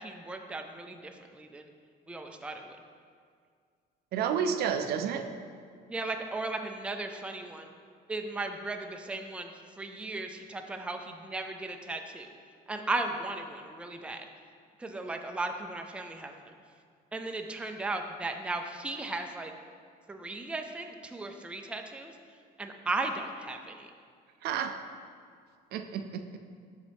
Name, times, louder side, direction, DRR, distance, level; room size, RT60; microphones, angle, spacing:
voice 1, 0.0-1.7 2.1-2.8 5.9-7.7 8.1-12.3 12.7-14.3 14.8-16.5 17.1-19.5 20.1-22.1 22.6-23.9, right 2 dB, 5° right, 5 dB, 0.4 m, -36 dB
voice 2, 4.1-5.3 24.4-24.8 25.7-26.4, right 7 dB, 70° right, 7 dB, 0.4 m, -30 dB
6.6 x 5.0 x 3.4 m, 2.1 s
cardioid pair, 110°, 17 cm